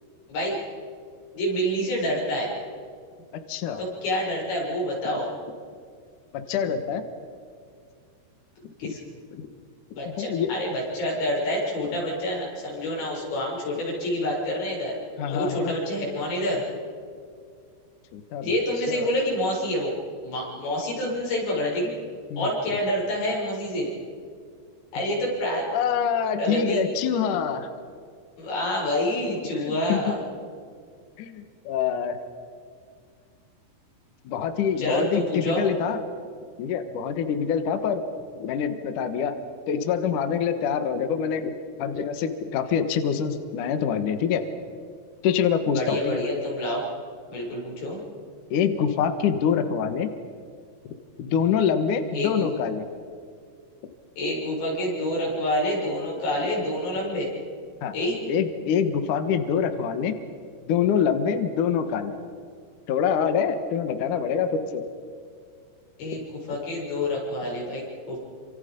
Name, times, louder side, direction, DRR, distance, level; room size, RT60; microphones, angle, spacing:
voice 1, 1.3-2.5 3.8-5.3 8.8-9.0 9.9-14.9 15.3-16.6 18.4-19.9 20.2-21.9 22.4-23.9 24.9-25.7 26.4-26.8 28.4-30.2 34.8-35.6 45.7-46.8 47.3-48.0 52.1-52.5 54.2-57.3 57.9-58.2 66.0-68.2, left 1 dB, 85° left, -3 dB, 9.3 m, -27 dB
voice 2, 3.3-3.8 6.3-7.0 8.8-8.9 9.3-9.5 10.2-10.5 15.2-15.8 18.1-18.5 18.9-19.1 22.3-22.5 25.1-25.2 25.7-27.7 29.5-30.2 31.2-32.2 34.3-36.0 36.6-38.1 38.4-39.4 39.7-41.5 41.8-44.4 45.2-46.2 48.5-50.1 51.2-52.9 56.4-56.5 57.8-57.9 58.3-60.2 60.7-62.2 62.9-64.8, left 7 dB, 60° left, 8 dB, 2.3 m, -25 dB
27.5 x 26.5 x 5.3 m, 2.2 s
omnidirectional pair, 5.1 m